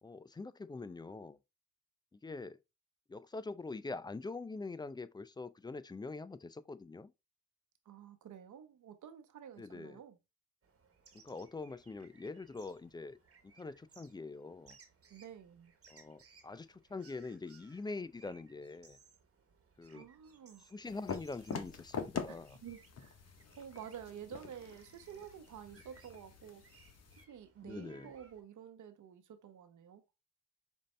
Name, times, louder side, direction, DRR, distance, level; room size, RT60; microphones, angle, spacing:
voice 1, 0.0-1.4 2.2-2.6 3.1-7.1 9.6-10.0 11.2-13.2 13.6-14.8 15.9-19.0 19.8-20.1 20.7-22.6 27.6-28.1, left 3 dB, 15° left, 0.3 m, -44 dB
voice 2, 7.9-10.2 15.1-15.7 19.9-20.7 22.3-23.2 23.6-26.6 27.3-30.0, right 8 dB, 65° right, 0.9 m, -50 dB
sound 1, 10.6-28.4, right 4 dB, 45° right, 1.3 m, -65 dB
sound 2, 20.9-27.2, left 6 dB, 50° left, 0.9 m, -45 dB
5.2 x 2.6 x 3.2 m
supercardioid pair, 45°, 33 cm